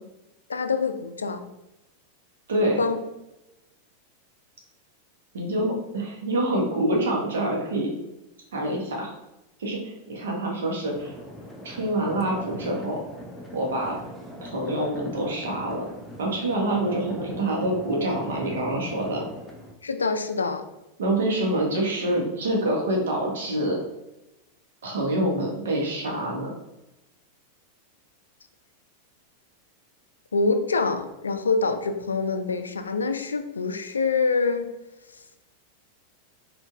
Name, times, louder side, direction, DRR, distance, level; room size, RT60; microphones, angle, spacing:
voice 1, 0.5-1.4 2.8-3.0 19.8-20.6 30.3-34.7, left 4 dB, 75° left, 8 dB, 0.3 m, -25 dB
voice 2, 2.5-2.8 5.3-7.9 8.5-9.1 9.6-11.1 11.6-13.0 13.5-14.0 14.4-15.9 16.2-19.3 21.0-23.8 24.8-26.5, right 1 dB, 60° right, -1 dB, 1.1 m, -26 dB
sound 1, 10.9-19.7, equal, 5° left, 0.6 m, -40 dB
5.1 x 2.6 x 2.4 m, 0.94 s
figure-of-eight pair, 90°, 0 cm